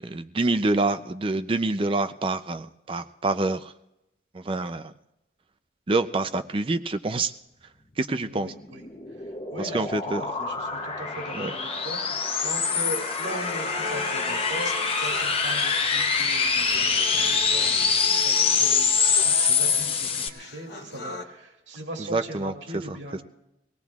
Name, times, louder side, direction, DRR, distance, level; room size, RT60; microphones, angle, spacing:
voice 1, 0.0-3.7 4.3-4.9 5.9-7.3 8.0-8.5 9.7-10.2 11.3-11.5 22.1-22.5, right 2 dB, 30° right, 10 dB, 0.4 m, -26 dB
voice 2, 8.3-8.8 9.2-18.9 19.2-23.2, right 1 dB, 85° right, 1 dB, 2.2 m, -39 dB
sound 1, 8.6-20.3, left 5 dB, 30° left, 0.8 m, -25 dB
sound 2, 13.2-21.2, left 2 dB, 60° left, 1.1 m, -39 dB
24.5 x 18.0 x 2.4 m, 0.89 s
head